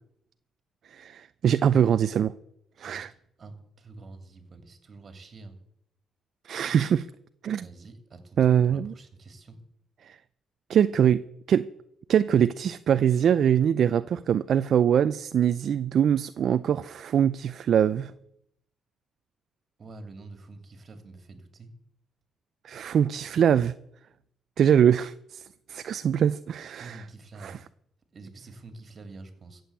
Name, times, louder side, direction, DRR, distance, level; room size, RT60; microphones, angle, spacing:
voice 1, 0.9-2.3 2.8-3.1 6.4-7.1 7.4-7.7 8.4-8.9 10.0-10.2 10.7-11.7 12.1-18.1 22.6-23.7 24.6-25.4 25.7-27.0 27.4-27.6, right 9 dB, 60° right, 0.4 m, -23 dB
voice 2, 3.4-5.6 7.6-9.6 19.8-21.7 26.7-27.6 28.1-29.6, right 3 dB, 40° right, 2.8 m, -47 dB
15.0 x 7.8 x 8.2 m
cardioid pair, 90°, 0 cm